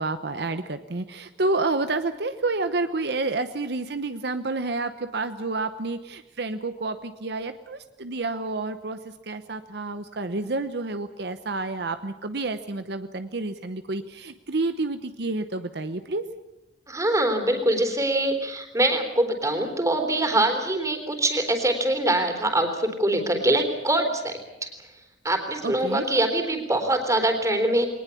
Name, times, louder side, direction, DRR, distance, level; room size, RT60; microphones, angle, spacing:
voice 1, 0.0-9.0 9.3-16.2 25.6-26.1, right 3 dB, 65° right, 10 dB, 1.0 m, -29 dB
voice 2, 16.9-24.3 24.6-24.7 25.2-27.9, right 1 dB, 20° right, 6 dB, 3.7 m, -23 dB
22.0 x 19.5 x 8.4 m, 0.93 s
head